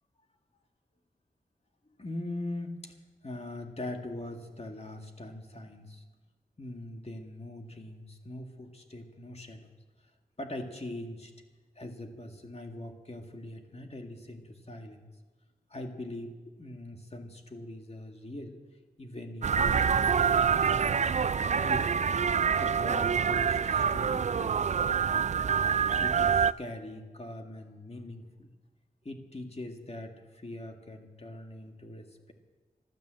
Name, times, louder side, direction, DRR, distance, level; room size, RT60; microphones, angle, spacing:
voice 1, 2.0-3.0 3.2-6.0 6.6-9.7 10.4-11.3 11.8-15.0 15.7-16.3 16.6-18.6 19.0-21.2 21.6-22.0 22.5-25.6 26.0-28.5 29.0-32.3, left 1 dB, 40° left, 4 dB, 2.1 m, -42 dB
sound 1, 19.4-26.5, right 7 dB, 45° right, 0.4 m, -26 dB
12.5 x 12.5 x 8.0 m, 1.3 s
cardioid pair, 45°, 17 cm